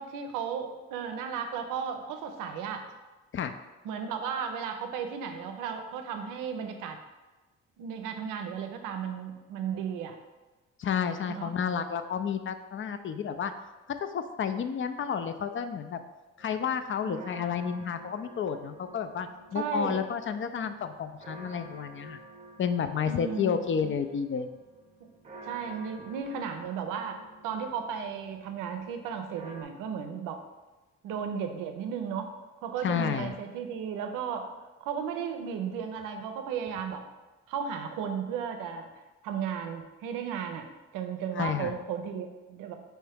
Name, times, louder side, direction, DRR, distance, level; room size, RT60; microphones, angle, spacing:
voice 1, 0.0-2.9 3.8-7.0 7.8-10.2 11.3-11.5 17.0-17.2 19.5-20.0 23.1-23.6 25.0-25.1 25.4-30.4 31.0-32.3 32.6-34.5 34.8-37.0 37.5-38.9 39.2-40.7 40.9-42.7, right 7 dB, 90° right, 6 dB, 0.5 m, -35 dB
voice 2, 10.8-13.5 14.1-16.0 16.4-22.2 22.6-24.5 32.8-33.3 41.4-41.7, left 7 dB, 40° left, 9 dB, 0.4 m, -31 dB
sound 1, 16.4-29.6, right 1 dB, 25° right, 0.8 m, -50 dB
4.5 x 3.0 x 3.4 m, 1.1 s
supercardioid pair, 50°, 31 cm